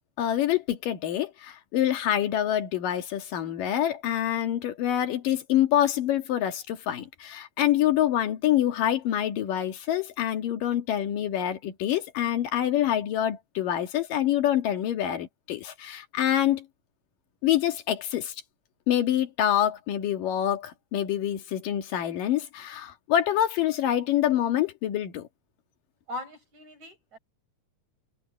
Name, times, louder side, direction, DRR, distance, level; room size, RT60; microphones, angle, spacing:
voice 1, 0.2-16.7 17.4-18.3 18.9-25.3, left 11 dB, 85° left, 3.5 m, -26 dB
voice 2, 26.1-27.2, left 2 dB, 60° right, 9.3 m, -39 dB
omnidirectional pair, 3.8 m